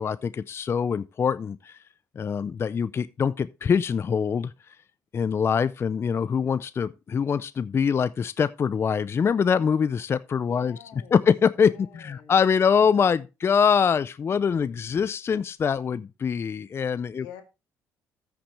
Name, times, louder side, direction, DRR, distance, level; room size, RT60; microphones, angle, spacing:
voice 1, 0.0-1.8 2.2-4.5 5.1-10.8 11.1-17.3, left 6 dB, 35° left, 0.4 m, -24 dB
voice 2, 10.5-11.2 11.6-12.3 12.6-12.9 17.1-17.4, left 10 dB, 90° left, 2.1 m, -47 dB
14.0 x 5.9 x 3.3 m
supercardioid pair, 85°, 7 cm